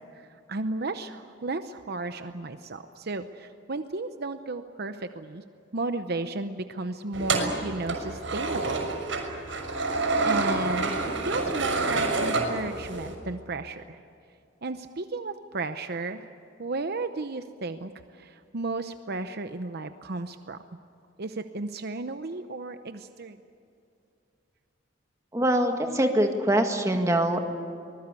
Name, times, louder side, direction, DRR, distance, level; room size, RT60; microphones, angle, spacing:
voice 1, 0.5-5.4 5.7-8.9 10.2-14.0 14.6-16.3 16.6-20.6 21.2-23.4, right 3 dB, 55° right, 9 dB, 0.8 m, -34 dB
sound 1, 7.1-13.1, right 3 dB, 80° right, 6.0 m, -28 dB
voice 2, 25.3-27.5, right 1 dB, 15° right, 4 dB, 1.9 m, -24 dB
24.5 x 20.5 x 8.4 m, 2.5 s
head